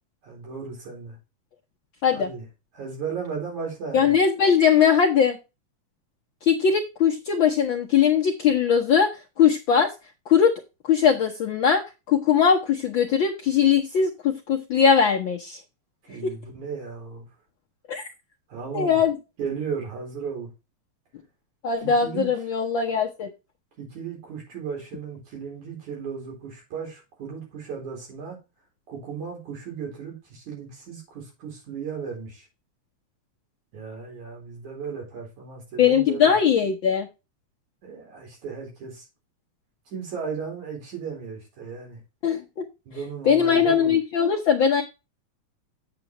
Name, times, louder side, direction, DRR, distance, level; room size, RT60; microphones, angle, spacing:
voice 1, 0.2-1.2 2.1-2.5 2.7-4.2 16.1-17.3 18.5-19.0 19.4-20.5 21.8-22.3 23.8-28.4 28.9-32.5 33.7-36.4 37.8-39.0 39.9-42.0 42.9-43.9, right 6 dB, 80° right, 5.5 m, -35 dB
voice 2, 3.9-5.4 6.4-9.1 9.4-9.9 10.3-10.5 10.9-15.6 16.2-16.3 17.9-18.0 18.7-19.2 21.6-23.3 35.8-37.1 42.2-42.4 43.2-44.8, left 7 dB, 70° left, 1.2 m, -20 dB
8.2 x 8.0 x 3.0 m
omnidirectional pair, 3.3 m